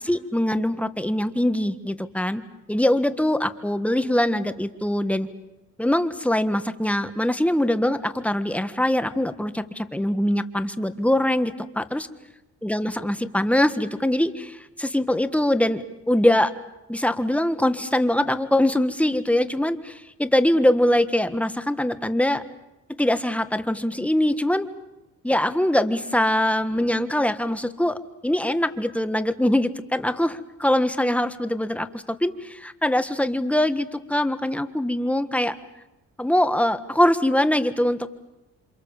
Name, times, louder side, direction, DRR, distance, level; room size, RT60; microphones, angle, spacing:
voice 1, 0.0-2.4 2.7-5.3 5.8-12.1 12.6-16.5 16.9-22.4 23.0-24.7 25.2-35.5 36.2-38.1, left 1 dB, 5° left, 10 dB, 1.6 m, -23 dB
28.5 x 26.5 x 7.4 m, 0.93 s
cardioid pair, 90°, 30 cm